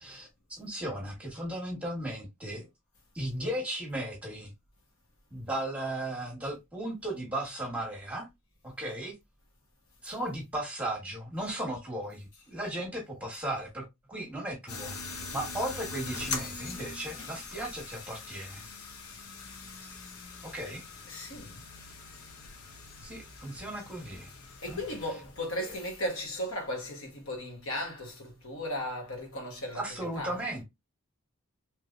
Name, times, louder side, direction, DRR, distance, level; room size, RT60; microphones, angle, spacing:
voice 1, 0.0-2.7 3.1-4.5 5.3-8.3 8.6-9.1 10.0-18.7 20.4-20.8 23.0-24.3 24.7-24.8 25.6-25.7 29.7-30.6, right 1 dB, 5° right, 1.1 m, -36 dB
sound 1, 14.7-25.7, left 4 dB, 90° left, 0.8 m, -42 dB
voice 2, 21.1-21.6 24.6-29.8 30.2-30.4, left 1 dB, 70° left, 1.2 m, -36 dB
3.2 x 3.1 x 2.4 m
head